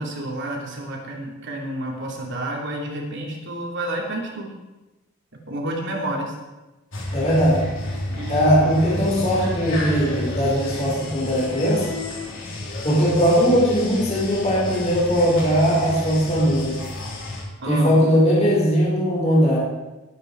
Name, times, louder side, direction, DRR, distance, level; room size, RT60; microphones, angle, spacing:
voice 1, 0.0-4.5 5.5-6.4 8.1-8.7 17.6-18.0, right 1 dB, 60° right, 0 dB, 3.3 m, -30 dB
sound 1, 6.9-17.4, left 1 dB, 65° left, 4.0 m, -31 dB
voice 2, 7.1-7.7 8.3-11.9 12.8-16.8 17.6-19.6, equal, 30° left, -5 dB, 4.8 m, -19 dB
19.5 x 9.6 x 4.8 m, 1.1 s
head